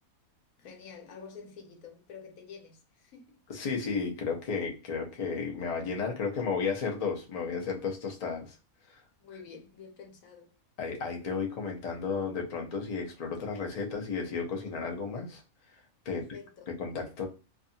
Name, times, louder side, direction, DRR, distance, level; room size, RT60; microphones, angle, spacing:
voice 1, 0.6-3.4 9.2-10.5 16.1-16.7, left 6 dB, 75° left, 1.1 m, -48 dB
voice 2, 3.5-8.6 8.9-9.0 10.8-15.4 15.7-15.8 16.0-16.2 16.7-17.3, left 5 dB, 55° left, 0.4 m, -33 dB
2.5 x 2.3 x 2.6 m
omnidirectional pair, 1.5 m